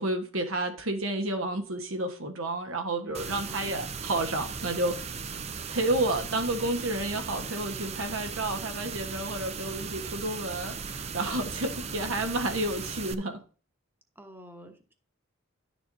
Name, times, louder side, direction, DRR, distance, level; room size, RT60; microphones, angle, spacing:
voice 1, 0.0-5.0 5.7-13.4, right 1 dB, 70° right, 1.3 m, -30 dB
voice 2, 3.0-3.9 14.2-14.9, equal, 10° right, 1.1 m, -47 dB
sound 1, 3.1-13.1, right 5 dB, 30° right, 0.5 m, -37 dB
11.5 x 6.9 x 2.7 m
head